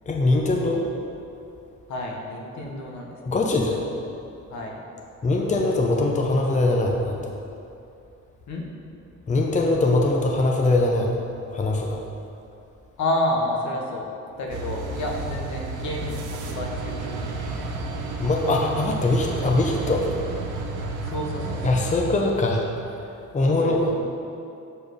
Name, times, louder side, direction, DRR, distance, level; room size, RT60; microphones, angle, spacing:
voice 1, 0.1-0.8 3.3-3.8 5.2-7.3 9.3-11.1 11.5-12.0 18.2-20.0 21.6-22.7 23.0-23.1 23.3-23.8, left 2 dB, 25° left, 0 dB, 0.7 m, -22 dB
voice 2, 1.9-3.4 4.5-4.8 8.5-8.6 13.0-14.1 14.4-17.5 17.8-18.0 21.0-21.7 23.4-24.0, left 1 dB, 70° left, 0 dB, 1.2 m, -30 dB
sound 1, 14.5-22.0, right 3 dB, 85° right, 0.8 m, -31 dB
7.0 x 4.3 x 5.2 m, 2.7 s
cardioid pair, 90°, 30 cm